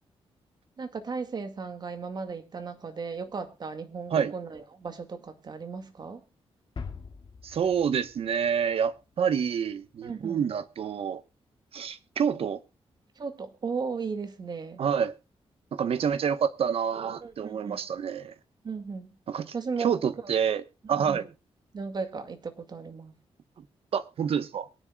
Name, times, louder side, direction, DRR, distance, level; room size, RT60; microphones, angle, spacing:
voice 1, 0.8-6.2 10.0-10.4 13.2-14.8 17.2-17.8 18.6-19.1 19.5-20.0 21.0-21.3 21.7-23.1, right 5 dB, 40° right, 2.1 m, -36 dB
sound 1, 6.8-9.4, left 5 dB, 45° left, 2.1 m, -43 dB
voice 2, 7.4-11.2 11.7-12.6 14.8-15.1 15.7-18.3 19.3-21.3 23.9-24.7, right 7 dB, 65° right, 1.1 m, -28 dB
23.0 x 10.0 x 2.3 m
wide cardioid pair, 155°, 11 cm